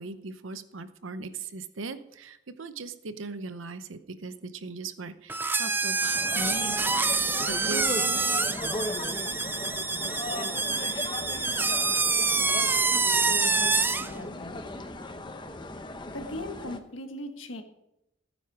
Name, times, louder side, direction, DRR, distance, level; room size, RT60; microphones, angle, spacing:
voice 1, 0.0-7.0 7.5-8.2, right 3 dB, 85° right, 12 dB, 0.8 m, -39 dB
sound 1, 5.3-14.1, right 4 dB, 10° right, 0.3 m, -26 dB
sound 2, 6.1-16.8, left 2 dB, 25° left, 0.8 m, -37 dB
voice 2, 12.9-14.6 16.1-17.6, left 2 dB, 85° left, 5 dB, 1.6 m, -39 dB
15.5 x 9.4 x 4.9 m, 0.85 s
head